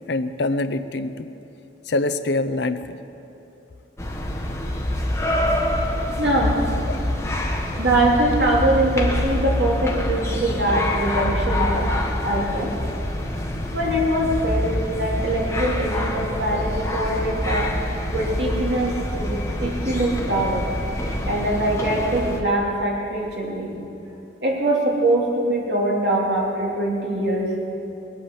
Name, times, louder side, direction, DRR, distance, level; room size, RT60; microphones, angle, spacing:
voice 1, 0.1-1.3 1.9-3.0 6.9-7.0, left 2 dB, 70° left, 9 dB, 0.7 m, -24 dB
sound 1, 4.0-22.4, left 1 dB, 15° left, 1.2 m, -26 dB
voice 2, 6.2-6.6 7.8-11.9 12.2-12.7 13.7-17.7 18.1-20.7 21.3-23.7 24.4-27.5, right 1 dB, 70° right, -3 dB, 3.1 m, -23 dB
20.0 x 8.6 x 7.1 m, 3.0 s
head